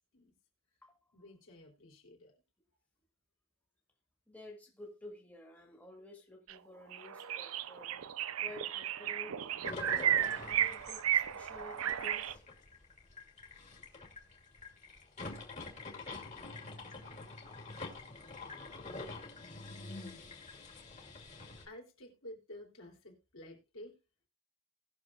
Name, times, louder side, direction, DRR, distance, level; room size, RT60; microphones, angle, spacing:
voice 1, 1.1-2.3 21.6-24.0, left 1 dB, 70° left, 3.3 m, -52 dB
voice 2, 4.3-8.1 8.4-12.4, left 1 dB, 5° left, 1.9 m, -52 dB
sound 1, 6.5-6.6 6.9-12.3, right 10 dB, 75° right, 0.5 m, -34 dB
sound 2, 9.6-21.7, left 3 dB, 35° left, 2.4 m, -46 dB
19.5 x 6.6 x 2.4 m
head